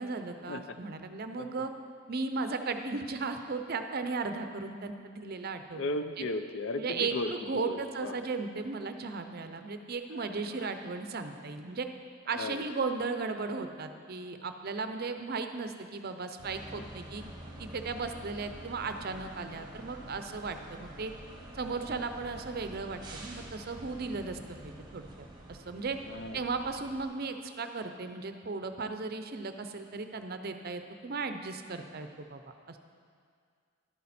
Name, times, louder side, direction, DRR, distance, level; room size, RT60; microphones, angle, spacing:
voice 1, 0.0-1.7 2.1-6.2 6.8-11.9 12.3-17.2 17.6-21.1 21.5-25.1 25.5-26.0 26.3-32.4 32.7-32.8, right 4 dB, 50° right, 7 dB, 0.6 m, -36 dB
voice 2, 5.7-8.2 10.1-10.7 12.3-12.6 16.8-16.9 19.6-19.7 26.0-26.4, left 2 dB, 65° left, 9 dB, 0.5 m, -36 dB
sound 1, 16.4-27.0, right 1 dB, 20° right, 1.1 m, -47 dB
11.5 x 8.6 x 4.2 m, 2.1 s
head